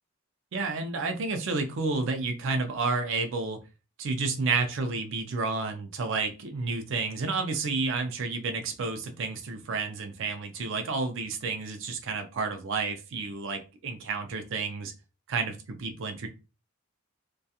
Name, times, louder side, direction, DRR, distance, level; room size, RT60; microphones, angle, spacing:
voice 1, 0.5-3.6 4.0-14.9 15.3-16.3, right 4 dB, 65° right, 6 dB, 0.4 m, -30 dB
2.7 x 2.3 x 2.3 m, 0.30 s
head